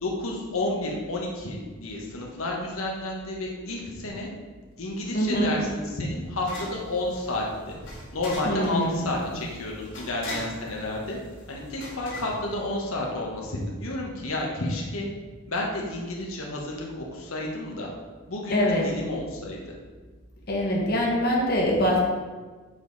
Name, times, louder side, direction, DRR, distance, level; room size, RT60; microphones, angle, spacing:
voice 1, 0.0-4.3 4.8-7.8 8.1-11.2 11.5-15.1 15.5-17.9 18.3-19.7, left 2 dB, 90° left, -1 dB, 1.2 m, -31 dB
sound 1, 4.9-13.2, left 1 dB, 70° left, 2.0 m, -42 dB
voice 2, 5.1-5.5 8.4-9.1 18.5-18.9 20.5-22.1, equal, 45° left, -3 dB, 1.3 m, -24 dB
7.2 x 5.3 x 4.0 m, 1.4 s
head